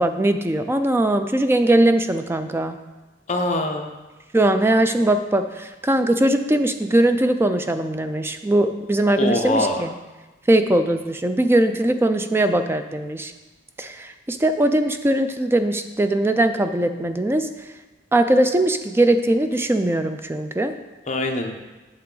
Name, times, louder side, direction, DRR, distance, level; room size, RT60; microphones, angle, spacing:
voice 1, 0.0-2.8 4.3-9.9 10.5-13.3 13.8-17.5 18.1-20.7, right 1 dB, 15° right, 8 dB, 0.4 m, -20 dB
voice 2, 3.3-4.0 9.2-9.9 21.1-21.5, left 2 dB, 40° left, 3 dB, 0.8 m, -23 dB
8.5 x 6.6 x 3.9 m, 1.2 s
head